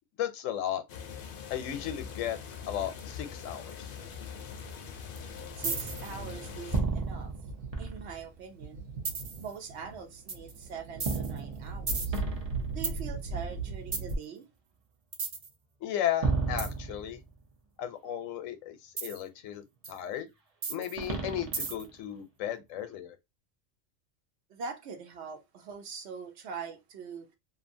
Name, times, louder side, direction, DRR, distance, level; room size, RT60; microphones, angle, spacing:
voice 1, 0.2-0.8 1.5-2.4 2.7-3.9 15.8-17.2 17.8-20.3 20.7-23.2, left 10 dB, 85° left, 0.9 m, -35 dB
sound 1, 0.9-6.8, left 6 dB, 60° left, 0.6 m, -42 dB
Thunder, 4.4-14.2, right 3 dB, 85° right, 1.2 m, -39 dB
sound 2, 5.6-6.1 6.7-8.3 9.0-9.5 10.3-10.5 11.0-13.0 13.9-14.1 15.1-15.5 16.2-17.4 19.0-19.2 19.8-19.9 20.6-22.0, right 4 dB, 40° right, 0.5 m, -32 dB
voice 2, 5.6-7.3 7.8-8.8 9.4-12.2 12.7-14.5 24.5-27.3, right 5 dB, 65° right, 0.8 m, -43 dB
2.7 x 2.4 x 2.5 m
omnidirectional pair, 1.3 m